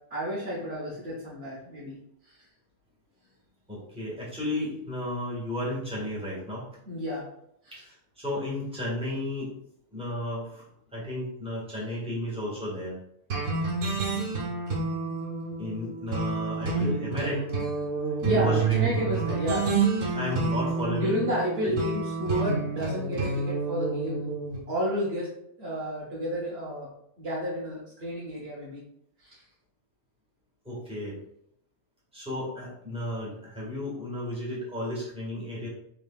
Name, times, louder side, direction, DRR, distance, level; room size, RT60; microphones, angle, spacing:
voice 1, 0.1-2.4 6.9-7.2 7.6-7.8 18.2-19.7 20.9-24.3 24.7-25.3 25.6-26.9 27.2-28.8 29.2-29.4, equal, 55° right, -6 dB, 1.4 m, -31 dB
voice 2, 3.7-6.7 7.7-9.5 9.9-13.0 15.6-17.5 18.3-18.9 20.1-21.3 21.6-21.8 30.6-31.1 32.1-35.7, left 1 dB, 5° right, -7 dB, 1.6 m, -33 dB
sound 1, 13.3-24.6, right 4 dB, 85° right, 1.3 m, -29 dB
5.7 x 3.1 x 2.4 m, 0.73 s
omnidirectional pair, 1.3 m